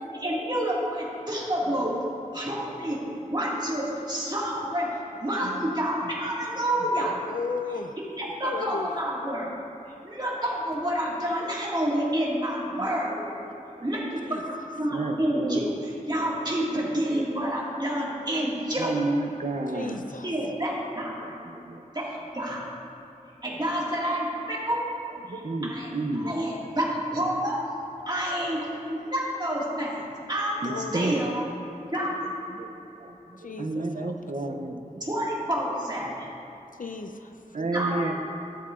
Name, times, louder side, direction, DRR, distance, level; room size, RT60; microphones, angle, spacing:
voice 1, 0.1-1.9 2.3-7.2 8.2-9.5 10.0-13.3 13.8-19.0 20.2-21.3 21.9-22.6 23.4-24.8 25.3-27.6 28.1-31.5 31.9-32.3 35.0-36.3 37.7-38.1, equal, 30° right, -6 dB, 1.9 m, -29 dB
voice 2, 7.2-7.9 8.4-9.0 14.2-14.4 19.7-20.4 30.6-31.3 33.4-34.3 36.8-37.6, left 4 dB, 70° left, 5 dB, 0.5 m, -35 dB
voice 3, 14.9-15.7 18.8-20.0 20.4-20.5 21.2-21.8 25.3-26.4 30.6-31.2 32.6-32.7 33.0-33.1 33.6-35.0 37.5-38.1, right 2 dB, 55° right, 5 dB, 0.6 m, -31 dB
13.0 x 7.6 x 2.5 m, 3.0 s
wide cardioid pair, 55°, 14 cm